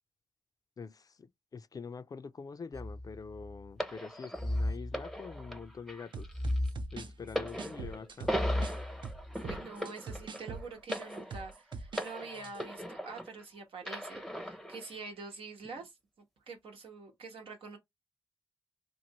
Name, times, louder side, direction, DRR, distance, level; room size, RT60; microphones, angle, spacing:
voice 1, 0.8-6.6 6.9-8.4, left 5 dB, 40° left, 0.4 m, -45 dB
sound 1, 2.7-3.7 4.3-5.6 6.3-7.6 8.3-9.4, left 1 dB, 35° right, 0.9 m, -36 dB
sound 2, 3.8-13.4 13.8-14.9 15.6-15.8, equal, ahead, 0.6 m, -39 dB
sound 3, 6.1-8.8 9.0-12.1 12.3-12.6, right 4 dB, 60° right, 0.5 m, -43 dB
voice 2, 9.3-15.9 16.5-17.8, right 4 dB, 90° right, 1.1 m, -46 dB
3.0 x 2.5 x 2.8 m
cardioid pair, 60°, 9 cm